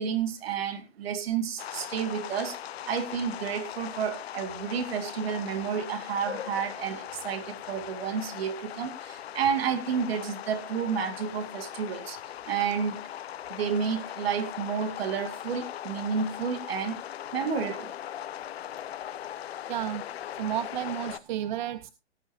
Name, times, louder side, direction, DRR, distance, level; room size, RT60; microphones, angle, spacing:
voice 1, 0.0-2.6 2.9-12.2 12.5-13.0 13.5-17.0 17.3-17.9, right 7 dB, 60° right, 2.2 m, -30 dB
sound 1, 1.6-21.2, left 11 dB, 60° left, 0.8 m, -39 dB
voice 2, 19.7-20.0 20.3-21.9, right 12 dB, 45° right, 0.6 m, -32 dB
17.5 x 7.7 x 3.0 m
hypercardioid pair, 130°, 34 cm